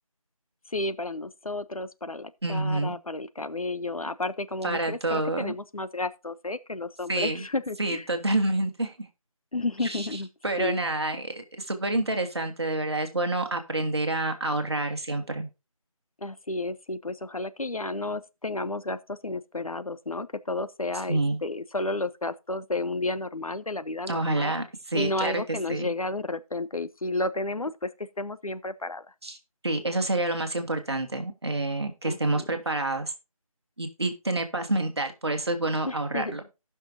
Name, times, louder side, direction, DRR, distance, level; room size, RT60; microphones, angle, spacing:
voice 1, 0.7-8.1 9.5-10.3 10.6-10.8 16.2-24.5 24.9-29.1 32.0-32.4 35.8-36.4, left 2 dB, 70° left, 0.8 m, -32 dB
voice 2, 2.4-2.9 4.6-5.5 7.1-7.4 7.8-9.1 9.8-10.1 10.4-15.5 21.1-21.4 24.1-24.6 24.9-25.9 29.2-29.4 29.6-33.1 33.8-36.4, right 2 dB, 45° right, 1.7 m, -28 dB
18.0 x 6.1 x 2.7 m
figure-of-eight pair, 165°, 19 cm